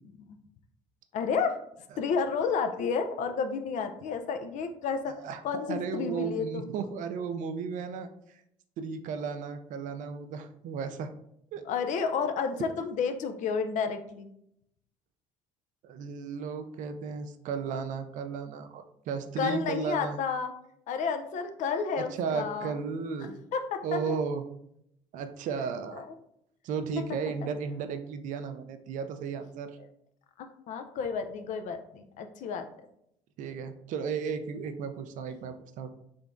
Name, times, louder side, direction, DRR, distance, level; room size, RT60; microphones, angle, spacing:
voice 1, 1.1-1.6 2.0-5.2 5.4-6.7 11.7-14.3 19.4-20.5 20.9-22.7 23.5-24.2 25.9-26.0 30.4-32.7, left 5 dB, 65° left, 7 dB, 0.5 m, -31 dB
voice 2, 5.1-5.4 5.7-8.4 8.8-11.1 11.5-11.6 15.8-20.2 22.0-23.4 23.8-24.4 25.1-26.0 26.6-29.8 33.4-35.9, right 6 dB, 65° right, 8 dB, 0.4 m, -34 dB
3.8 x 3.3 x 2.5 m, 0.75 s
supercardioid pair, 65°, 14 cm